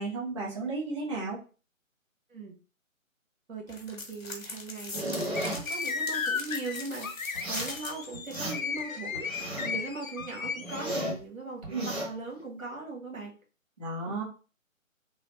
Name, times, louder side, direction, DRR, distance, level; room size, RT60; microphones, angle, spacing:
voice 1, 0.0-1.4 11.7-11.9 13.8-14.2, right 3 dB, 20° right, -7 dB, 0.7 m, -33 dB
voice 2, 3.5-13.3, right 3 dB, 80° right, -1 dB, 1.4 m, -40 dB
sound 1, 3.7-8.8, left 3 dB, 50° left, 1.0 m, -41 dB
sound 2, 4.9-5.6 7.3-7.8 8.1-8.8 9.1-9.8 10.2-11.2 11.6-12.1, right 1 dB, 50° right, 1.3 m, -34 dB
sound 3, 5.3-11.0, left 5 dB, 75° left, 0.6 m, -35 dB
3.1 x 2.0 x 3.1 m, 0.35 s
figure-of-eight pair, 145°, 41 cm